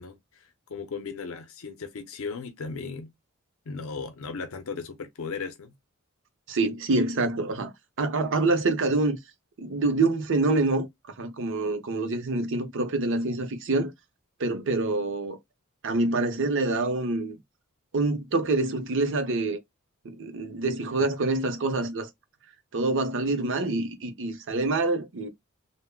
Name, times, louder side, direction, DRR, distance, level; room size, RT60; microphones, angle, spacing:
voice 1, 0.0-3.1 3.7-5.7, left 5 dB, 65° left, 0.5 m, -36 dB
voice 2, 6.5-7.7 8.0-9.2 9.6-10.9 11.2-13.9 14.4-15.4 15.8-17.4 17.9-19.6 20.0-22.1 22.7-25.3, right 2 dB, 60° right, 0.7 m, -26 dB
3.4 x 2.1 x 2.2 m
head